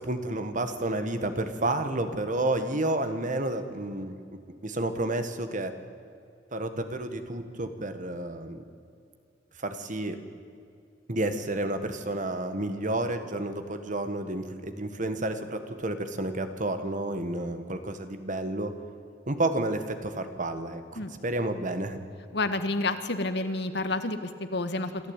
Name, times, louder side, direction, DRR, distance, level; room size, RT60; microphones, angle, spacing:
voice 1, 0.0-4.2 4.6-5.7 6.5-8.6 9.6-10.2 11.1-18.7 19.3-22.0, right 2 dB, 45° right, 8 dB, 1.7 m, -30 dB
voice 2, 22.3-24.9, left 2 dB, 65° left, 9 dB, 1.6 m, -29 dB
27.0 x 13.5 x 9.0 m, 2.4 s
head